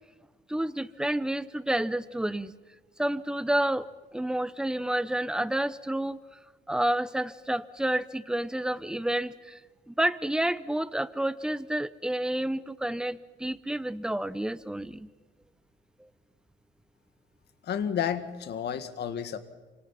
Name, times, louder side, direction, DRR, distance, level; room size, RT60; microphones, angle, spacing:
voice 1, 0.5-2.5 3.0-6.2 6.7-9.6 9.9-15.1 16.0-16.1, right 1 dB, 5° right, 16 dB, 0.7 m, -29 dB
voice 2, 17.6-19.4, left 8 dB, 60° left, 11 dB, 1.7 m, -31 dB
28.0 x 25.5 x 5.8 m, 1.3 s
cardioid pair, 125°, 20 cm